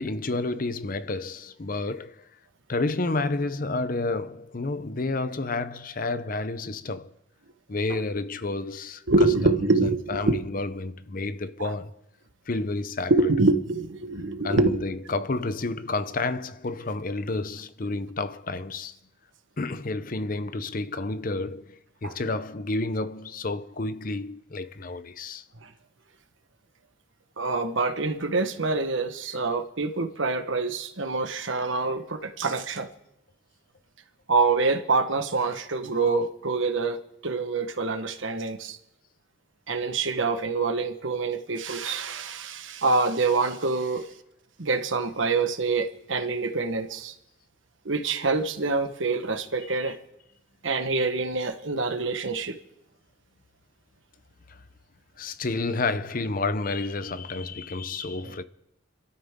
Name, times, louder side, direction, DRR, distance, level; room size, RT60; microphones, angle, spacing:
voice 1, 0.0-2.3 2.7-7.1 7.7-9.1 9.4-9.5 9.8-12.0 12.5-13.1 14.4-19.0 19.6-25.4 49.8-49.9 54.5-54.6 55.2-58.4, left 3 dB, 45° left, 0.7 m, -30 dB
voice 2, 9.1-10.4 11.6-11.8 13.1-14.8 22.0-22.1 25.6-25.7 27.4-32.9 34.3-37.0 37.2-38.8 39.7-44.1 44.6-47.1 47.8-50.0 50.6-52.6 58.2-58.3, right 3 dB, 75° right, 1.3 m, -26 dB
29.5 x 13.0 x 3.7 m
head